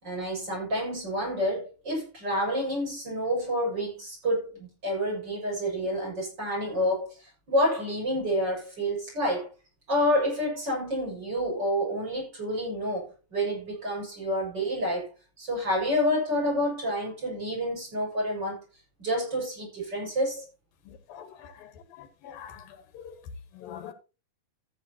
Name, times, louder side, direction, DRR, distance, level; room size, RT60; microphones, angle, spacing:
voice 1, 0.0-7.1 7.5-9.5 9.9-15.1 15.4-18.6 19.0-20.5, equal, 30° right, 7.3 m, -28 dB
voice 2, 20.9-21.7 22.0-22.7 22.9-23.1 23.5-23.9, left 9 dB, 80° left, 3.2 m, -44 dB
14.0 x 9.9 x 2.8 m
omnidirectional pair, 4.1 m